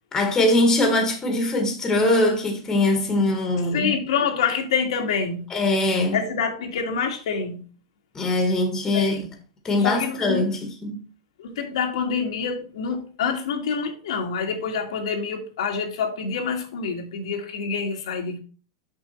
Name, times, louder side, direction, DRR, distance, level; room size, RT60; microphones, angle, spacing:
voice 1, 0.1-3.9 5.5-6.2 8.1-9.2 9.6-11.0, left 2 dB, 15° left, 1.6 m, -22 dB
voice 2, 3.7-5.5 6.1-7.6 8.9-9.3 9.8-10.5 11.4-18.4, left 6 dB, 80° left, 1.8 m, -27 dB
6.2 x 5.2 x 4.3 m
supercardioid pair, 145°, 3 cm